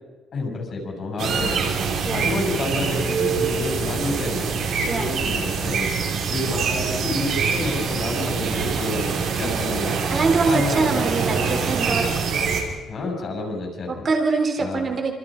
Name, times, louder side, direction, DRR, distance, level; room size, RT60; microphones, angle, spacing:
voice 1, 0.3-5.9 6.3-10.0 10.5-11.6 11.9-12.1 12.9-14.1 14.6-15.0, left 2 dB, 35° left, 2 dB, 7.0 m, -29 dB
sound 1, 1.2-12.6, right 5 dB, 60° right, 5.2 m, -24 dB
voice 2, 4.9-5.3 9.4-9.8 10.1-12.3 13.9-15.1, right 4 dB, 25° right, 5 dB, 3.4 m, -24 dB
28.0 x 27.5 x 5.2 m, 1.2 s
cardioid pair, 175°, 0 cm